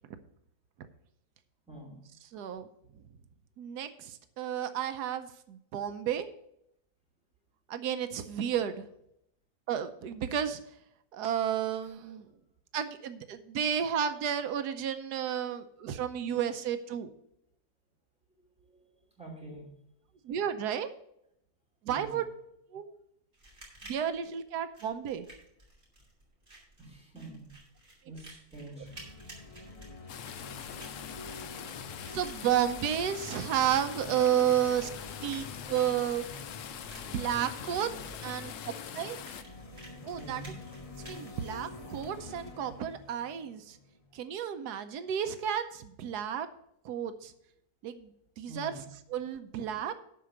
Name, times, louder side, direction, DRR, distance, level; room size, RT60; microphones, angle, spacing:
voice 1, 1.7-2.0 18.7-19.7 21.9-22.2 26.8-27.5 28.0-28.9 40.1-40.5 48.5-48.9, right 1 dB, 5° right, -2 dB, 3.0 m, -46 dB
voice 2, 2.2-2.7 3.6-6.3 7.7-8.8 9.7-10.6 11.1-12.3 12.7-17.1 20.2-20.9 21.8-22.2 22.7-22.9 23.8-25.3 32.1-34.9 35.2-36.2 37.1-37.9 38.2-39.2 40.0-40.4 41.1-43.8 44.1-46.5 46.8-47.3 47.8-48.1 48.4-48.7 49.1-50.0, right 9 dB, 90° right, 9 dB, 1.3 m, -32 dB
sound 1, 23.3-42.3, right 1 dB, 30° right, 3.4 m, -54 dB
sound 2, 28.8-44.2, left 3 dB, 30° left, 0.7 m, -47 dB
sound 3, 30.1-39.4, left 9 dB, 65° left, 0.8 m, -44 dB
11.5 x 4.7 x 6.4 m, 0.76 s
omnidirectional pair, 1.7 m